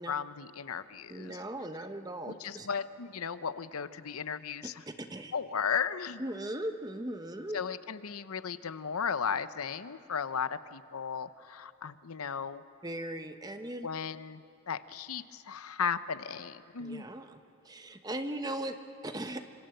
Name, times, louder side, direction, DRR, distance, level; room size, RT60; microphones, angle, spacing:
voice 1, 0.1-1.4 2.3-4.7 5.3-6.2 7.5-12.6 13.8-14.4 14.7-17.0, left 6 dB, 90° left, 14 dB, 0.8 m, -35 dB
voice 2, 1.1-2.7 4.6-5.3 6.2-7.6 12.8-13.9 16.8-17.4 17.6-18.8 19.0-19.4, right 1 dB, 15° right, 7 dB, 1.0 m, -38 dB
26.5 x 25.5 x 7.8 m, 2.8 s
head